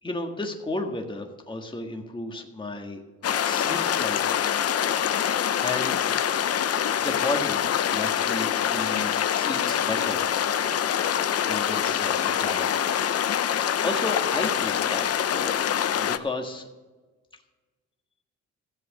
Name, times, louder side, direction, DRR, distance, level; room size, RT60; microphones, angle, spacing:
voice 1, 0.0-4.5 4.8-6.0 6.8-7.6 7.9-10.8 11.4-12.9 13.4-16.7, left 2 dB, 15° left, 3 dB, 1.7 m, -34 dB
sound 1, 3.2-16.2, left 9 dB, 50° left, 0.8 m, -25 dB
14.0 x 7.9 x 6.5 m, 1.3 s
cardioid pair, 90°, 30 cm